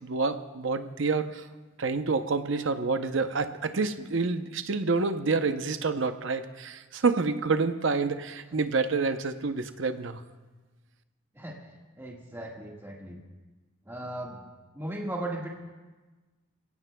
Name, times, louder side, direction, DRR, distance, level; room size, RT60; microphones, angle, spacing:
voice 1, 0.0-1.5 1.8-10.2, right 4 dB, 65° right, 9 dB, 0.7 m, -28 dB
voice 2, 12.0-13.2 13.9-14.4 14.7-15.5, right 1 dB, 10° right, -2 dB, 1.7 m, -36 dB
22.5 x 17.0 x 2.3 m, 1.3 s
head